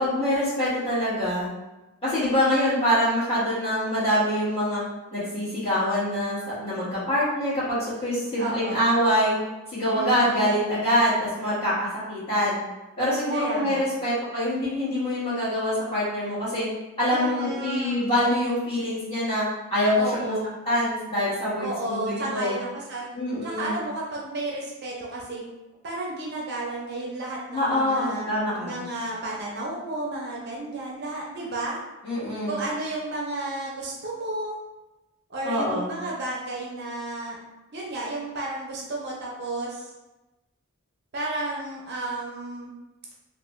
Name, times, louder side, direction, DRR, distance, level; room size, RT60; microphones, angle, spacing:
voice 1, 0.0-1.5 2.0-4.8 5.1-9.3 9.7-12.6 13.0-16.7 17.0-19.4 19.7-20.3 20.6-22.6 23.1-23.8 27.5-28.8 32.0-32.6 35.4-35.9, equal, 25° left, -12 dB, 1.5 m, -25 dB
voice 2, 8.4-8.9 9.9-10.5 13.3-13.8 17.1-18.0 20.0-20.5 21.6-23.1 23.4-25.5 25.8-28.3 28.6-31.8 32.5-34.6 35.3-37.4 37.7-39.9 41.1-42.7, right 2 dB, 45° right, -3 dB, 0.5 m, -32 dB
3.1 x 2.2 x 3.0 m, 1.0 s
head